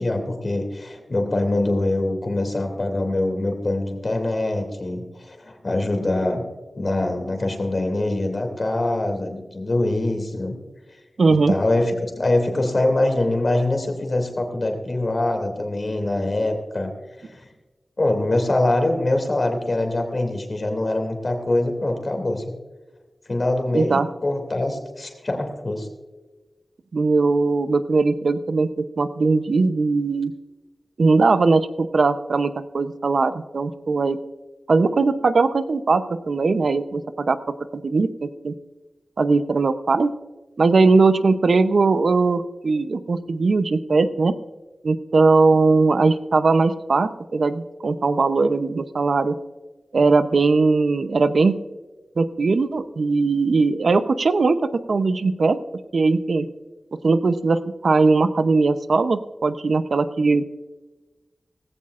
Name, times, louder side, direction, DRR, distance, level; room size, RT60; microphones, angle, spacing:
voice 1, 0.0-6.4 6.8-10.6 11.3-16.9 17.2-17.5 18.0-22.6 23.3-25.9, left 2 dB, 40° left, 3 dB, 2.7 m, -24 dB
voice 2, 11.2-11.5 23.7-24.1 26.9-30.3 31.0-34.2 34.7-37.4 37.7-38.5 39.2-40.1 40.6-44.4 44.8-49.3 49.9-51.6 52.2-55.6 55.9-56.5 57.0-60.4, right 3 dB, 65° right, 11 dB, 0.7 m, -19 dB
18.0 x 16.0 x 2.5 m, 1.2 s
wide cardioid pair, 100°, 0 cm